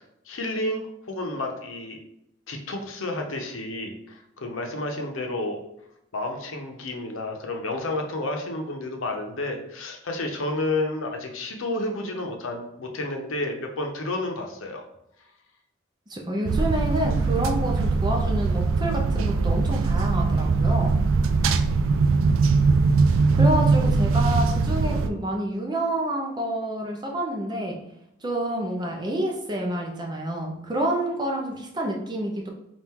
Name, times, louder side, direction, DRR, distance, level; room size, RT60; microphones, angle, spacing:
voice 1, 0.3-2.0 2.5-5.6 6.1-14.8 23.4-23.5, left 2 dB, 90° left, 3 dB, 0.7 m, -31 dB
voice 2, 16.1-21.0 23.3-27.7 28.2-32.5, right 1 dB, 20° right, 0 dB, 0.6 m, -28 dB
sound 1, 16.5-25.1, right 4 dB, 90° right, 0.3 m, -21 dB
4.3 x 2.4 x 3.7 m, 0.80 s
head